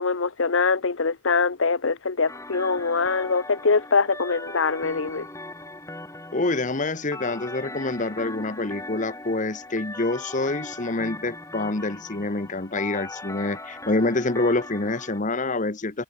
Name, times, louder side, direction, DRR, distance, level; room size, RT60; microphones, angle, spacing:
voice 1, 0.0-5.3, left 4 dB, 60° left, 0.9 m, -23 dB
sound 1, 2.3-15.2, left 2 dB, 15° left, 6.3 m, -39 dB
voice 2, 6.3-16.0, left 2 dB, 35° left, 1.1 m, -26 dB
head